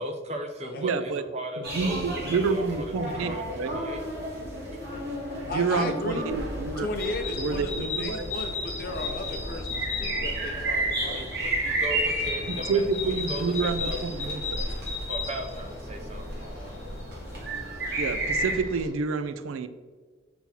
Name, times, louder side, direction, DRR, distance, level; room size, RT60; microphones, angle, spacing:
voice 1, 0.0-4.0 4.4-4.5 5.3-5.5 8.9-9.1 9.4-9.5 10.7-14.0 14.8-16.8, right 1 dB, 30° right, 4 dB, 0.6 m, -38 dB
voice 2, 0.8-1.2 1.7-3.8 5.5-6.9 7.4-8.3 12.5-14.7 18.0-19.7, right 4 dB, 80° right, 11 dB, 0.4 m, -28 dB
sound 1, 1.6-18.5, right 1 dB, 50° right, 1.6 m, -33 dB
voice 3, 5.5-6.2 6.8-11.2 14.7-14.8, left 2 dB, 45° left, 3 dB, 0.7 m, -35 dB
sound 2, 6.2-18.9, left 3 dB, 65° left, 1.6 m, -35 dB
5.9 x 5.4 x 2.9 m, 1.5 s
head